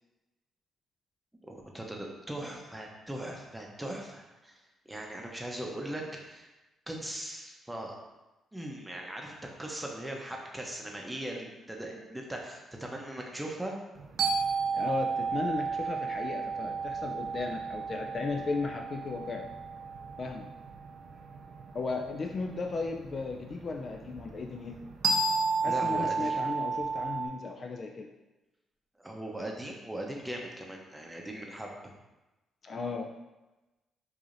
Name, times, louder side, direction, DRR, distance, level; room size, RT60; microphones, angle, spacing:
voice 1, 1.4-4.6 4.9-6.5 6.9-8.0 8.5-13.7 25.6-26.4 29.0-31.7, right 1 dB, 10° right, 0 dB, 0.7 m, -39 dB
sound 1, 14.0-27.3, right 4 dB, 60° right, 0.4 m, -33 dB
voice 2, 14.7-19.5 20.2-20.5 21.7-24.7 25.6-28.1 32.6-33.1, left 4 dB, 45° left, 3 dB, 0.3 m, -35 dB
4.7 x 2.7 x 2.6 m, 1.1 s
cardioid pair, 90°, 0 cm